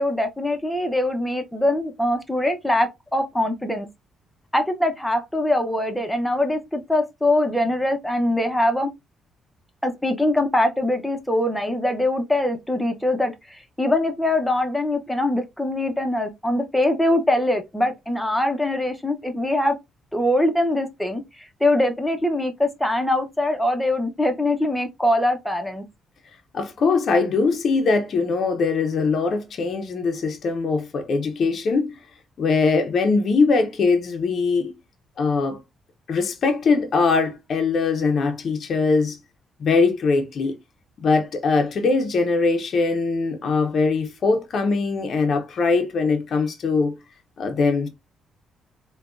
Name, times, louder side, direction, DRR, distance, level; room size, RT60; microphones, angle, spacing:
voice 1, 0.0-3.9 4.5-8.9 9.8-19.7 20.1-25.8, left 1 dB, 5° left, 0.7 m, -23 dB
voice 2, 26.5-32.0 32.4-34.7 35.2-35.6 36.1-39.2 39.6-40.6 41.0-47.0 47.4-47.9, left 4 dB, 55° left, 0.6 m, -21 dB
3.5 x 2.2 x 2.4 m
cardioid pair, 90°, 0 cm